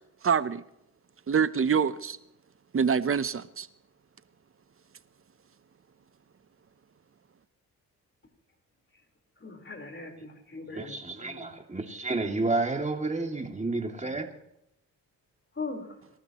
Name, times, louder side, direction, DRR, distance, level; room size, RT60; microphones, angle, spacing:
voice 1, 0.2-0.6 1.3-2.2 2.7-3.7, right 6 dB, 35° right, 15 dB, 0.9 m, -25 dB
voice 2, 9.4-10.9 11.2-11.5 15.6-15.9, left 3 dB, 30° left, 4 dB, 4.3 m, -39 dB
voice 3, 10.7-14.3, right 3 dB, 20° right, 4 dB, 2.6 m, -30 dB
27.5 x 12.5 x 3.1 m, 0.80 s
cardioid pair, 70°, 36 cm